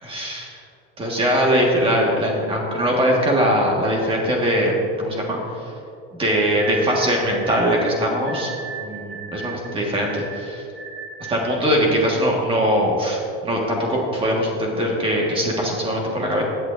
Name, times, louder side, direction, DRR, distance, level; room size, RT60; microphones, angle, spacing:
voice 1, 0.0-0.6 1.0-5.4 6.1-8.5 8.8-10.6 11.3-16.4, equal, 20° right, -1 dB, 1.5 m, -21 dB
sound 1, 6.6-11.5, right 6 dB, 45° right, 1.4 m, -35 dB
15.5 x 8.7 x 2.5 m, 2.6 s
cardioid pair, 160°, 30 cm